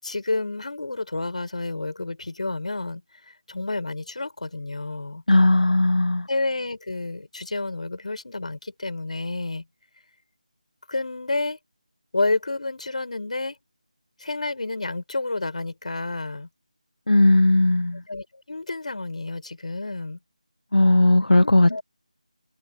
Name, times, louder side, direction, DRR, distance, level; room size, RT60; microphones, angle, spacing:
voice 1, 0.0-3.0 3.5-5.2 6.3-9.6 10.9-11.6 12.1-13.6 14.2-16.5 18.1-20.2 21.7-21.8, left 2 dB, 60° left, 7.2 m, -29 dB
voice 2, 5.3-6.3 17.1-18.0 20.7-21.8, left 2 dB, 85° left, 1.1 m, -17 dB
figure-of-eight pair, 170°, 4 cm